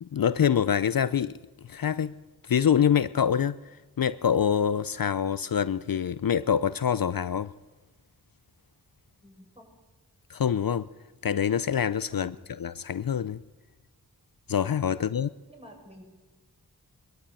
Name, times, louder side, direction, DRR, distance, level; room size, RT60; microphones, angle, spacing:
voice 1, 0.0-1.4 1.6-2.2 2.4-7.5 10.3-10.9 11.2-12.3 12.6-13.4 14.5-15.3, left 8 dB, 60° left, 16 dB, 0.6 m, -25 dB
voice 2, 9.2-9.7 12.1-12.3 14.9-15.1 15.5-16.0, equal, 15° right, 0 dB, 7.1 m, -50 dB
22.5 x 13.0 x 8.9 m, 1.2 s
wide cardioid pair, 50°, 38 cm